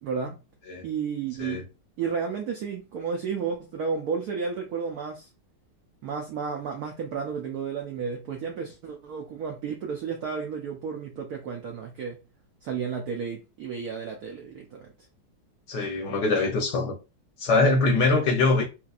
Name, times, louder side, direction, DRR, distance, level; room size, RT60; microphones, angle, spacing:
voice 1, 0.0-0.4 0.8-1.7 2.0-5.3 6.0-12.2 12.6-14.9, right 6 dB, 75° right, 0.8 m, -32 dB
voice 2, 15.7-17.0 17.4-18.6, left 3 dB, 65° left, 1.1 m, -23 dB
3.2 x 3.1 x 2.4 m
omnidirectional pair, 2.3 m